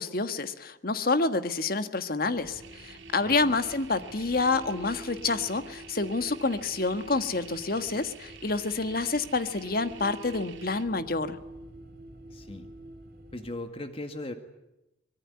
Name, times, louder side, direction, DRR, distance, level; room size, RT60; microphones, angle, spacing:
voice 1, 0.0-11.4, left 3 dB, 50° left, 11 dB, 1.5 m, -28 dB
sound 1, 2.3-13.6, right 1 dB, 50° right, 3.5 m, -47 dB
sound 2, 2.6-10.9, right 8 dB, 80° right, 3.1 m, -50 dB
voice 2, 3.3-3.6 12.3-12.7 13.3-14.3, left 1 dB, 30° left, 7 dB, 2.0 m, -38 dB
24.5 x 21.5 x 9.6 m, 0.91 s
head